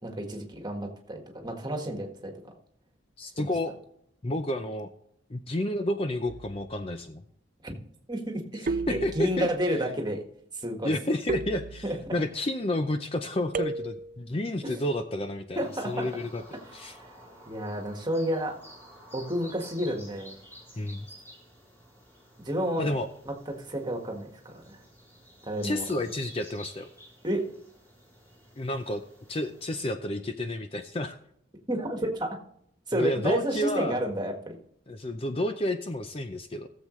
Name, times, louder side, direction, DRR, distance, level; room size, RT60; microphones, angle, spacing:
voice 1, 0.0-2.5 3.4-3.5 7.6-7.7 8.1-10.2 10.5-10.9 11.8-12.2 14.6-14.8 15.5-16.1 16.6-17.1 17.5-18.5 19.1-20.4 22.4-22.9 23.2-24.8 25.4-25.8 27.2-27.4 31.7-32.4 32.9-34.6, equal, 20° right, 2 dB, 1.6 m, -31 dB
voice 2, 3.2-3.7 4.2-4.9 5.3-7.2 8.9-9.5 10.8-11.8 12.1-16.4 16.7-17.0 20.8-21.1 22.8-23.1 25.6-26.9 28.6-29.0 29.3-31.2 32.9-34.0 34.9-36.7, left 1 dB, 30° left, 7 dB, 0.5 m, -30 dB
sound 1, 6.3-6.8 8.7-9.6 11.3-12.2 13.5-14.3, right 4 dB, 45° right, 0.4 m, -34 dB
sound 2, 15.5-29.9, equal, 10° left, 3.7 m, -52 dB
17.0 x 7.5 x 3.1 m, 0.69 s
head